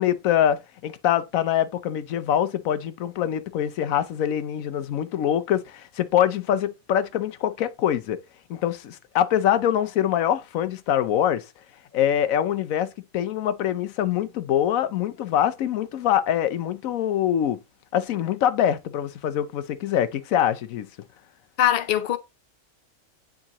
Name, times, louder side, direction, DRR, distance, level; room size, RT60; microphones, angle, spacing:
voice 1, 0.0-8.2 8.5-11.4 11.9-17.6 17.9-20.9, left 10 dB, 85° left, 1.1 m, -24 dB
voice 2, 21.6-22.2, left 11 dB, 55° left, 0.8 m, -21 dB
9.7 x 3.8 x 2.9 m
omnidirectional pair, 1.4 m